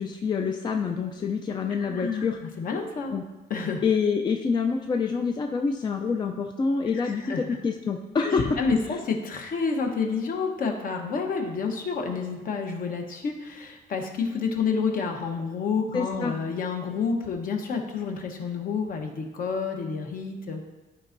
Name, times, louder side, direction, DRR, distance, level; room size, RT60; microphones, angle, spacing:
voice 1, 0.0-2.4 3.1-3.2 3.8-8.8 15.9-16.4, left 5 dB, 25° left, 3 dB, 0.4 m, -26 dB
voice 2, 1.7-3.1 3.5-3.8 6.9-7.4 8.2-20.6, left 5 dB, 55° left, 2 dB, 1.0 m, -29 dB
13.0 x 4.4 x 2.6 m, 1.1 s
cardioid pair, 150°, 18 cm